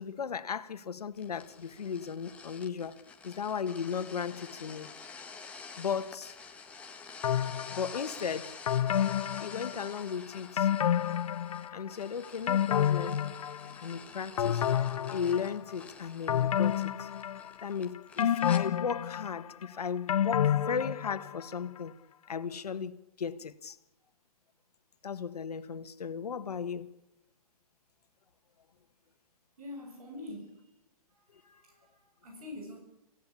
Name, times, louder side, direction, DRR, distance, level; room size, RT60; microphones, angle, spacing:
voice 1, 0.0-4.9 5.8-6.4 7.7-8.6 9.4-10.7 11.7-13.2 13.8-14.6 15.1-17.1 17.6-22.0 22.3-23.8 25.0-26.9 31.3-31.6, left 6 dB, 85° left, 1.9 m, -36 dB
sound 1, 1.1-18.6, left 5 dB, 5° left, 1.6 m, -49 dB
sound 2, 7.2-8.0 8.7-10.1 10.6-11.9 12.2-13.9 14.4-15.7 16.3-17.7 18.2-21.4 21.8-21.9, left 9 dB, 65° left, 0.9 m, -29 dB
voice 2, 29.6-30.7 31.1-32.8, left 2 dB, 70° right, 7.4 m, -46 dB
26.5 x 16.0 x 8.7 m
hypercardioid pair, 160°, 19 cm